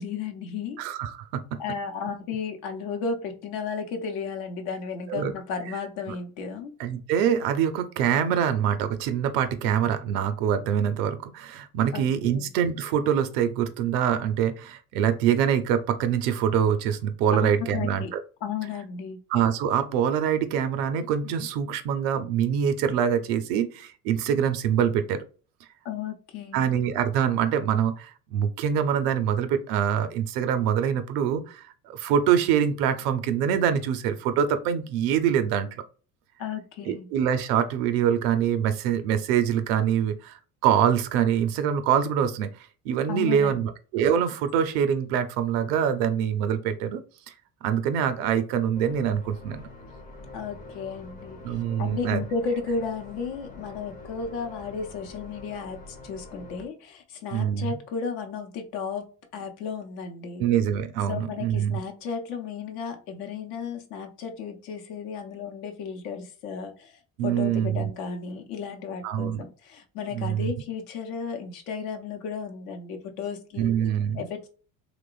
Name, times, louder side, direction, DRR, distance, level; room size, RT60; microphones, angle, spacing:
voice 1, 0.0-0.8 1.6-6.7 11.9-12.4 17.3-18.1 18.4-19.2 25.8-26.6 36.4-37.1 43.1-43.6 50.3-60.4 61.1-73.8 74.1-74.5, left 5 dB, 75° left, 4 dB, 0.8 m, -34 dB
voice 2, 0.8-1.6 5.1-5.3 6.1-6.2 6.8-18.2 19.3-25.2 26.5-31.6 31.9-35.8 36.9-42.5 42.8-47.0 47.6-49.7 51.4-52.2 57.3-57.8 60.4-61.8 67.2-67.9 69.0-69.5 70.1-70.5 73.6-74.3, right 8 dB, 80° right, 10 dB, 0.6 m, -25 dB
sound 1, 48.7-56.7, left 2 dB, 20° left, 0.5 m, -45 dB
3.0 x 2.1 x 2.3 m, 0.38 s
hypercardioid pair, 70°, 46 cm